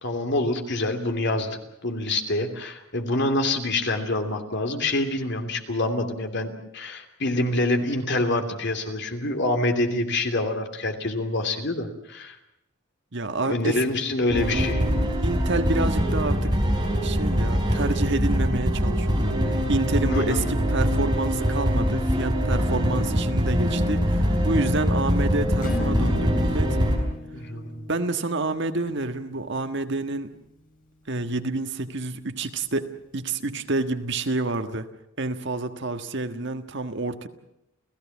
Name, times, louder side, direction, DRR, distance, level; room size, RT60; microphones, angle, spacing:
voice 1, 0.0-12.4 13.4-14.8 20.1-20.6 27.3-27.8, left 2 dB, 60° left, 6 dB, 3.0 m, -26 dB
voice 2, 13.1-13.8 15.2-16.6 17.0-26.8 27.9-30.3 31.1-34.9 35.2-37.3, right 2 dB, 60° right, 8 dB, 1.6 m, -28 dB
sound 1, 14.3-27.0, equal, 20° right, 4.9 m, -23 dB
Acoustic guitar / Strum, 25.6-30.9, left 2 dB, 45° left, 5.9 m, -38 dB
30.0 x 16.5 x 7.2 m, 0.85 s
head